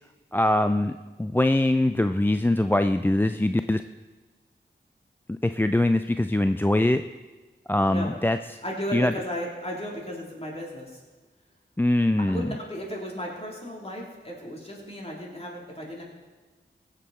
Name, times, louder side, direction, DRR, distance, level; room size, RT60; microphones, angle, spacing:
voice 1, 0.3-0.9 1.2-3.8 5.3-7.0 7.7-8.6 8.9-9.1 11.8-12.5, left 1 dB, 10° left, 9 dB, 0.4 m, -23 dB
voice 2, 8.6-11.0 12.3-16.0, equal, 30° left, -2 dB, 3.5 m, -35 dB
16.5 x 7.6 x 4.3 m, 1.3 s
cardioid pair, 40°, 19 cm